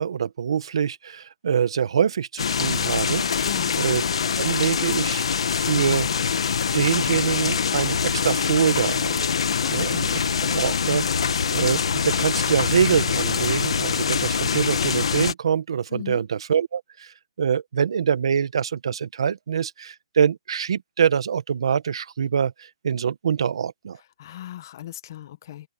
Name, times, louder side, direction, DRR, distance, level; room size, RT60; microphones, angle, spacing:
voice 1, 0.0-3.5 3.8-4.0 4.4-5.2 5.6-6.1 6.7-9.3 9.7-10.2 10.5-24.0, right 7 dB, 70° right, 1.3 m, -24 dB
sound 1, 2.4-15.3, left 6 dB, 90° left, 1.9 m, -24 dB
voice 2, 3.4-3.8 9.6-10.0 15.9-16.2 24.2-25.7, left 12 dB, 45° left, 1.6 m, -37 dB
hypercardioid pair, 170°, 3 cm